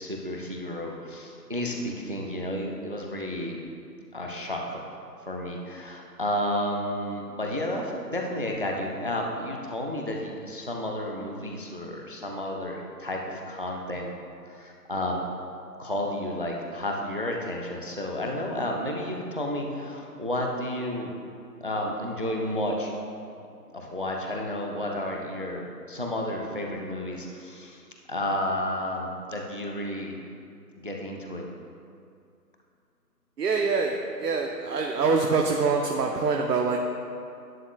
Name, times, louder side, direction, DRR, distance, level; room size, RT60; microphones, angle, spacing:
voice 1, 0.0-3.6 4.1-4.8 5.3-14.1 14.4-15.2 15.8-21.1 21.6-22.9 23.7-27.8 28.1-30.1 30.8-31.4, left 1 dB, 35° right, 1 dB, 0.5 m, -31 dB
voice 2, 33.4-36.8, right 4 dB, 70° right, 2 dB, 0.8 m, -25 dB
11.0 x 8.8 x 2.3 m, 2.4 s
figure-of-eight pair, 160°, 50 cm